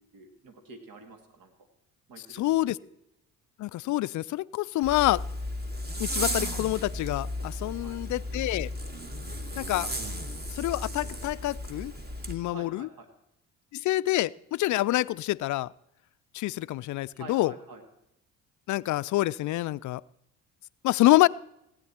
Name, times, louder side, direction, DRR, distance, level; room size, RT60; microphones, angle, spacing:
voice 1, 0.0-1.5 2.1-2.7 7.6-8.0 12.5-13.1 17.1-17.8, right 3 dB, 60° right, 6 dB, 2.1 m, -48 dB
voice 2, 2.4-2.8 3.6-5.2 6.0-8.7 9.6-9.9 10.5-11.9 12.3-12.9 13.7-15.7 16.3-17.5 18.7-20.0 20.8-21.3, left 16 dB, 50° left, 18 dB, 0.4 m, -26 dB
Zipper (clothing), 4.8-12.3, equal, 25° right, 1.9 m, -34 dB
16.5 x 9.3 x 4.3 m, 0.81 s
hypercardioid pair, 55°, 39 cm